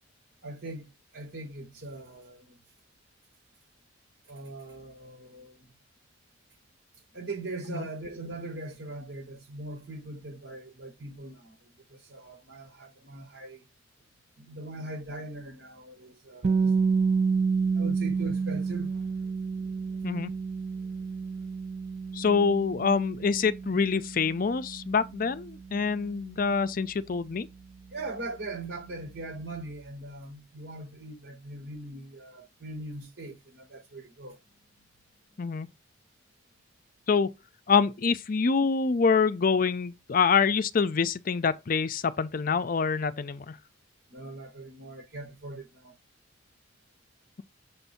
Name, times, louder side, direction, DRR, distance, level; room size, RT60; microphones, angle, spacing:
voice 1, 0.4-2.6 4.3-5.7 7.1-13.7 14.4-16.7 17.7-19.3 19.6-20.1 20.8-20.9 27.9-34.4 44.1-45.9, right 2 dB, 90° right, 4.3 m, -41 dB
sound 1, 16.4-28.3, right 5 dB, 35° right, 0.4 m, -30 dB
voice 2, 22.1-27.5 35.4-35.7 37.1-37.3 37.7-43.6, left 5 dB, 45° left, 0.5 m, -26 dB
6.9 x 2.7 x 5.6 m
head